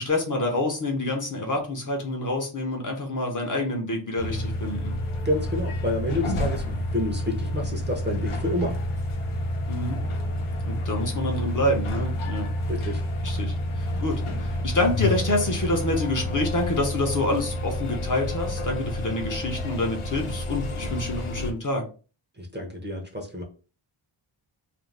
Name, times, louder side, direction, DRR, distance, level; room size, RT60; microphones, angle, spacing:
voice 1, 0.0-5.0 9.7-10.0 10.7-12.5 13.2-21.8, left 1 dB, 40° left, 2 dB, 0.7 m, -27 dB
sound 1, 4.2-21.5, left 1 dB, 85° left, 0.8 m, -29 dB
voice 2, 5.2-8.7 12.7-13.0 22.4-23.4, left 1 dB, 20° right, 1 dB, 0.6 m, -29 dB
2.5 x 2.2 x 3.1 m, 0.36 s
wide cardioid pair, 105°, 48 cm